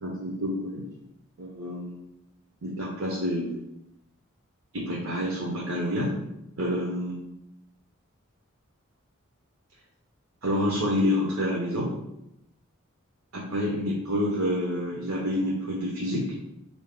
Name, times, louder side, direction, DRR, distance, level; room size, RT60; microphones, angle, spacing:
voice 1, 0.0-0.8 1.4-2.0 2.6-3.5 4.7-6.1 6.6-7.2 10.4-11.9 13.3-16.3, left 1 dB, 90° right, -3 dB, 0.8 m, -28 dB
4.0 x 2.7 x 3.6 m, 0.84 s
head